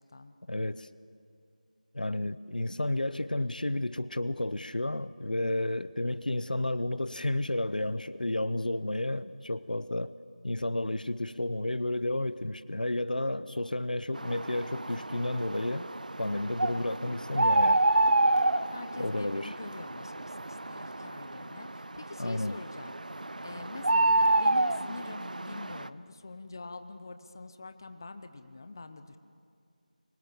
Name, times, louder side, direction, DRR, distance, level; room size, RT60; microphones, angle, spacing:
voice 1, 0.5-0.9 1.9-10.1 10.4-15.9 16.2-17.8 19.0-19.5 22.2-22.6, left 1 dB, 75° left, 0.8 m, -31 dB
sound 1, 14.2-25.9, right 2 dB, 65° right, 0.8 m, -29 dB
voice 2, 18.7-22.9 23.4-29.2, left 3 dB, 25° left, 0.9 m, -45 dB
26.0 x 23.5 x 7.1 m
figure-of-eight pair, 175°, 5 cm